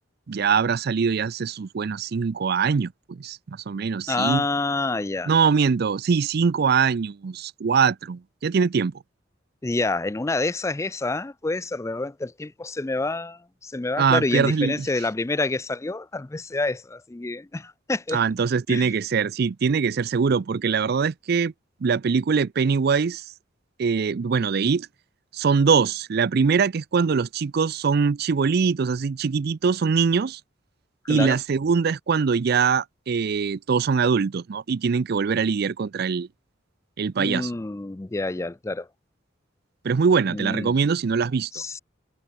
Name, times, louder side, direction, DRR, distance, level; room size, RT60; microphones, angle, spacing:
voice 1, 0.3-4.4 5.3-8.9 14.0-14.9 18.1-21.5 21.8-23.2 23.8-24.9 25.3-30.4 31.1-36.3 37.0-37.5 39.8-41.6, right 5 dB, 55° right, 0.4 m, -22 dB
voice 2, 4.1-5.3 9.6-18.2 18.7-18.9 31.0-31.4 37.2-38.9 40.3-40.7 41.5-41.8, left 2 dB, 15° left, 0.4 m, -28 dB
head